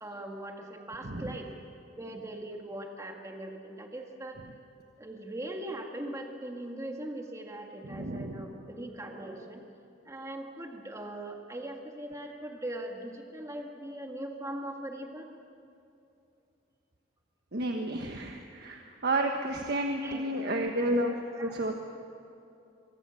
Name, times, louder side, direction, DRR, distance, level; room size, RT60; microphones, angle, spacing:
voice 1, 0.0-1.6 1.9-4.4 5.0-9.6 10.1-15.3 20.0-21.7, right 1 dB, 15° right, 2 dB, 1.9 m, -40 dB
voice 2, 1.0-1.4 7.8-8.5 17.5-21.1 21.4-21.7, right 1 dB, 60° right, 3 dB, 1.4 m, -31 dB
25.0 x 22.5 x 7.1 m, 2.6 s
head